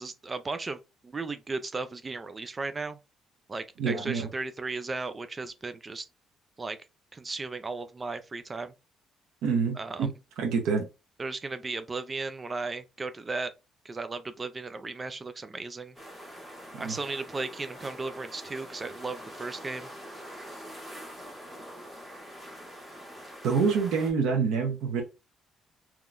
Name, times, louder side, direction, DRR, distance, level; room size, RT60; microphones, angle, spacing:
voice 1, 0.0-3.0 3.5-6.1 6.6-6.8 7.1-8.7 9.8-10.1 11.2-13.5 13.8-16.0 16.8-19.9, right 3 dB, 20° right, 0.3 m, -35 dB
voice 2, 3.8-4.3 9.4-10.1 10.4-10.9 16.7-16.9 23.4-25.0, right 5 dB, 90° right, 0.9 m, -26 dB
sound 1, 15.9-24.1, equal, 5° right, 1.4 m, -44 dB
3.7 x 2.9 x 2.5 m
cardioid pair, 165°, 0 cm